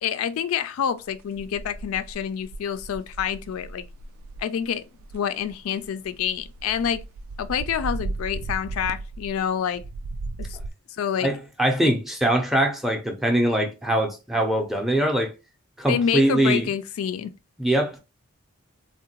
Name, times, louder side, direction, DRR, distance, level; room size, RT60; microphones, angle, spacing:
voice 1, 0.0-3.8 4.4-4.8 5.1-7.0 7.4-9.8 10.4-10.6 11.0-11.3 11.8-11.9 15.9-17.3, left 8 dB, 80° left, 0.3 m, -27 dB
sound 1, 1.1-4.5 5.0-5.2 5.4-9.4 9.7-10.7, right 3 dB, 75° right, 0.3 m, -36 dB
voice 2, 11.2-15.3 15.8-16.7 17.6-18.0, right 1 dB, ahead, 0.4 m, -22 dB
3.6 x 2.1 x 2.8 m
head